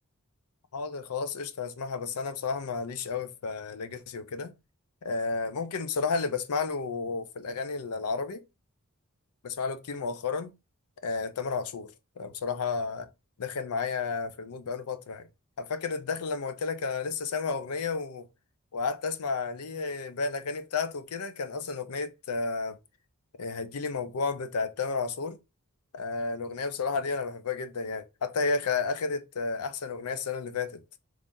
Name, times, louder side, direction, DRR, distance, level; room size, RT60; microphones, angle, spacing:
voice 1, 0.7-4.5 5.0-8.4 9.4-10.5 11.0-13.1 13.4-15.3 15.6-18.3 18.7-22.8 23.4-25.4 25.9-30.8, left 4 dB, 85° left, 0.5 m, -32 dB
3.3 x 2.6 x 3.6 m
head